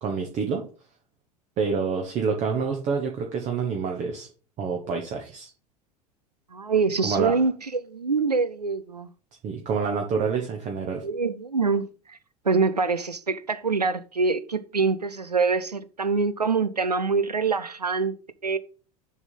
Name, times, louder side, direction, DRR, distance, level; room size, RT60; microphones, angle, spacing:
voice 1, 0.0-0.6 1.6-4.3 4.6-5.5 7.0-7.3 9.4-11.0, right 5 dB, 35° right, 1.2 m, -27 dB
voice 2, 6.5-7.5 7.9-9.1 11.0-12.2 12.4-18.1 18.4-18.6, right 4 dB, 90° right, 0.5 m, -25 dB
6.8 x 4.3 x 5.4 m
figure-of-eight pair, 75°, 20 cm